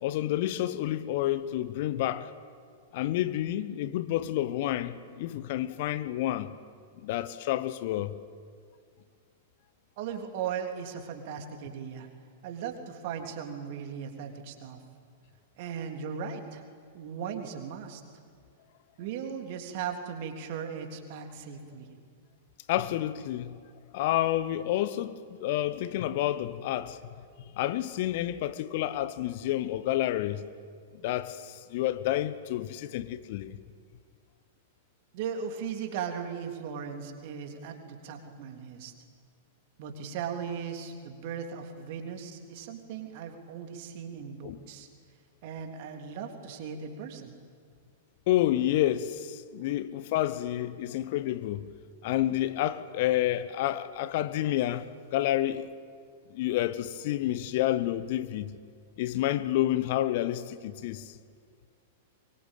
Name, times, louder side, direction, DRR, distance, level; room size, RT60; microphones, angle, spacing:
voice 1, 0.0-2.3 2.9-6.5 7.0-8.1 22.7-23.6 23.9-27.0 27.5-30.4 31.0-33.6 44.4-44.6 48.3-51.7 52.0-55.6 56.3-58.5 59.0-61.1, left 13 dB, 50° left, 1.1 m, -29 dB
voice 2, 10.0-12.1 12.4-14.8 15.6-16.6 16.9-18.0 19.0-22.0 35.1-38.9 39.8-44.9 45.4-47.4, right 7 dB, 50° right, 3.5 m, -37 dB
24.0 x 23.5 x 9.2 m
figure-of-eight pair, 100°, 0 cm